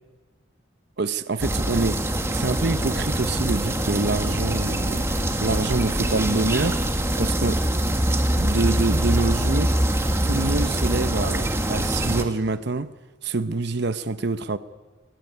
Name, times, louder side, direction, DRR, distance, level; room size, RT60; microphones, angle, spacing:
voice 1, 1.0-6.8 7.2-7.7 8.3-9.8 10.2-12.9 13.2-14.6, right 3 dB, 55° right, 0.8 m, -26 dB
sound 1, 1.4-12.2, right 1 dB, 15° right, 1.6 m, -24 dB
20.0 x 19.0 x 9.9 m
head